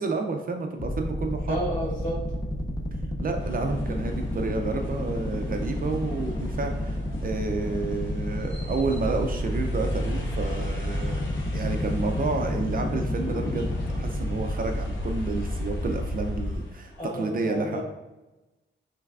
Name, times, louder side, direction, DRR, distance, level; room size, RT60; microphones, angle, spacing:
voice 1, 0.0-1.6 3.2-11.2 11.5-13.7 14.0-17.8, right 3 dB, 45° right, 4 dB, 0.4 m, -30 dB
sound 1, 0.8-16.6, left 1 dB, 20° left, 0.4 m, -30 dB
voice 2, 1.5-2.2 17.0-17.8, equal, 40° left, -5 dB, 1.2 m, -31 dB
sound 2, 3.4-17.0, left 1 dB, 70° left, 0.8 m, -43 dB
5.7 x 3.2 x 2.3 m, 1.1 s
wide cardioid pair, 160°, 20 cm